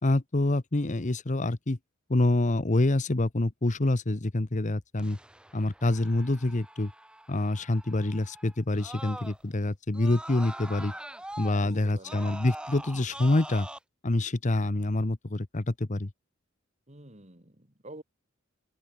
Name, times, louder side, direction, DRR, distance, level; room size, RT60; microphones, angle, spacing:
voice 1, 0.0-1.8 2.1-5.2 5.5-6.9 7.3-10.9 11.4-13.7 14.0-16.1, left 2 dB, 35° left, 1.0 m, -26 dB
Screaming, 5.0-9.6 9.9-13.8, right 1 dB, 5° right, 1.0 m, -44 dB
voice 2, 11.5-12.3 16.9-18.0, right 1 dB, 35° right, 4.1 m, -48 dB
open air
head